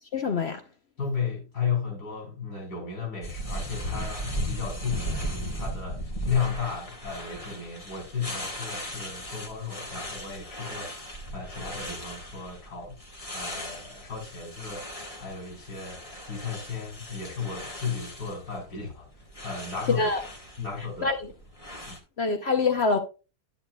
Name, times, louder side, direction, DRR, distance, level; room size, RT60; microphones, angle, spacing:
voice 1, 0.1-0.6 20.0-20.2 21.0-21.2 22.2-23.0, left 4 dB, 55° left, 0.7 m, -25 dB
voice 2, 1.0-11.0 11.3-12.9 13.3-14.9 15.2-20.1 20.6-21.1 21.9-22.0, left 6 dB, 75° left, 4.6 m, -34 dB
sound 1, 3.2-22.0, equal, 20° left, 1.3 m, -37 dB
10.0 x 8.8 x 2.2 m
omnidirectional pair, 1.8 m